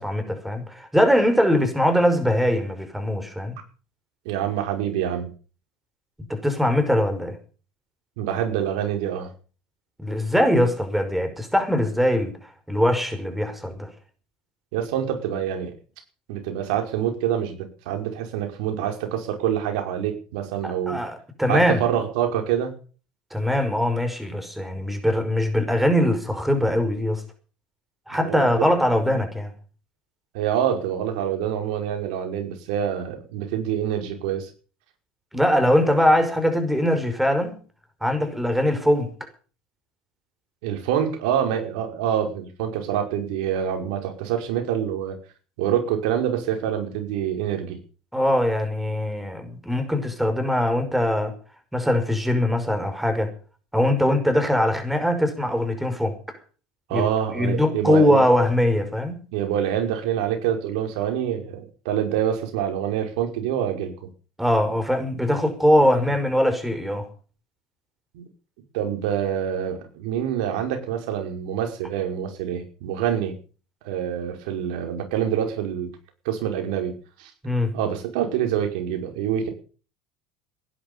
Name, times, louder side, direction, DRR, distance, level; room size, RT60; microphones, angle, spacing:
voice 1, 0.0-3.6 6.3-7.4 10.0-12.4 12.7-13.9 20.6-21.8 23.3-27.2 28.1-29.5 35.3-37.6 38.0-39.1 48.1-51.3 51.7-53.3 53.7-56.2 56.9-57.1 57.3-59.2 64.4-67.1 77.4-77.7, left 1 dB, 5° right, 5.3 m, -21 dB
voice 2, 4.3-5.3 8.2-9.3 14.7-15.7 16.3-21.0 21.5-22.8 28.1-28.7 29.0-29.2 30.3-34.5 40.6-45.2 45.6-47.8 56.9-58.2 59.3-64.1 68.1-68.2 68.7-73.4 73.8-75.9 76.3-77.3 77.7-79.5, right 9 dB, 80° right, 5.4 m, -26 dB
17.5 x 11.0 x 7.0 m
supercardioid pair, 115°, 4 cm